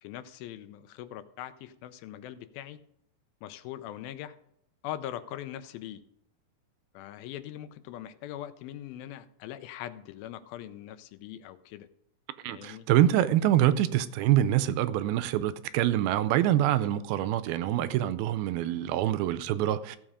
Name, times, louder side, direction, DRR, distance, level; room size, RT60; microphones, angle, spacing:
voice 1, 0.0-2.8 3.4-4.4 4.8-6.0 6.9-11.9 12.5-12.9, left 12 dB, 80° left, 2.5 m, -41 dB
voice 2, 12.4-20.0, right 12 dB, 90° right, 2.5 m, -25 dB
15.5 x 7.3 x 5.0 m
omnidirectional pair, 4.2 m